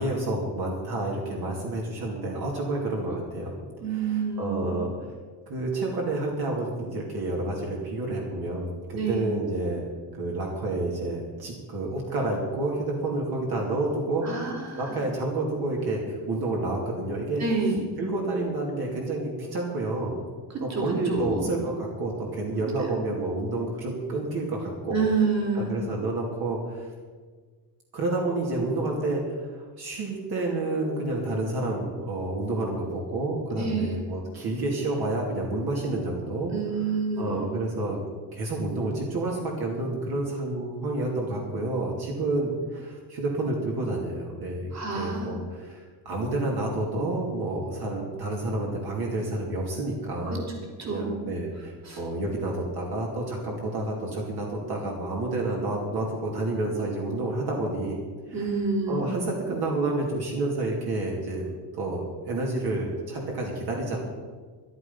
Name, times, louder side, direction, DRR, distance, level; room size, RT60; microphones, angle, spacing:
voice 1, 0.0-3.6 3.9-4.9 5.5-9.8 10.1-14.3 14.8-17.4 18.0-20.1 20.6-25.0 25.5-26.9 27.9-38.0 38.3-58.0 58.3-58.5 58.9-61.4 61.7-64.0, right 2 dB, 60° right, -2 dB, 2.7 m, -29 dB
voice 2, 3.8-4.8 8.9-9.3 14.2-15.0 17.4-17.8 20.7-21.5 22.8-22.9 24.9-25.8 33.6-34.0 36.5-37.5 44.7-45.3 50.3-50.4 50.8-51.1 51.8-52.0 58.3-59.1, right 4 dB, 40° right, 0 dB, 3.2 m, -28 dB
13.5 x 12.0 x 5.7 m, 1.5 s
cardioid pair, 160°, 43 cm